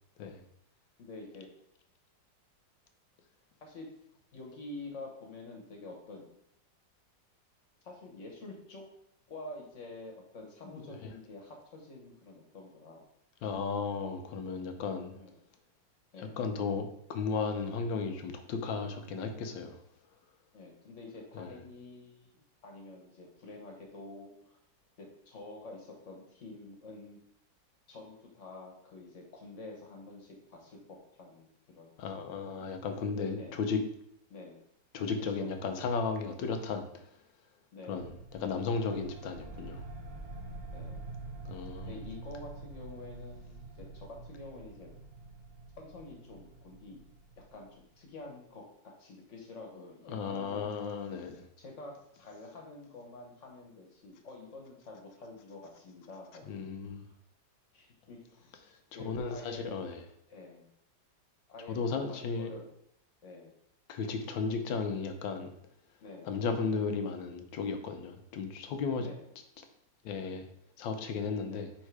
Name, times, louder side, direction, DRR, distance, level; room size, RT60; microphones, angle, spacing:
voice 1, 1.0-1.5 3.6-3.9 4.3-6.2 7.8-8.8 9.3-13.0 15.1-15.3 16.1-16.4 20.5-24.6 25.0-27.2 27.9-32.2 33.3-33.6 34.3-34.6 35.3-35.5 37.7-38.1 40.7-41.0 41.9-44.9 45.8-47.0 47.4-48.6 49.0-50.7 51.6-57.0 57.7-58.5 58.9-59.8 60.1-60.7 61.5-62.7 63.2-63.5 66.0-66.4 69.0-69.3 71.5-71.7, left 2 dB, 45° left, 0 dB, 1.4 m, -48 dB
voice 2, 10.6-11.1 13.4-15.1 16.2-19.8 21.3-21.5 32.0-33.8 34.9-37.0 37.9-39.8 41.4-42.0 50.0-51.5 56.5-57.0 59.0-60.0 61.7-62.5 63.9-65.5 66.2-69.1 70.0-70.5 70.8-71.7, left 5 dB, 85° left, 6 dB, 1.5 m, -35 dB
sound 1, 37.9-48.1, right 2 dB, 45° right, 0.8 m, -46 dB
5.4 x 3.7 x 4.7 m, 0.74 s
omnidirectional pair, 2.0 m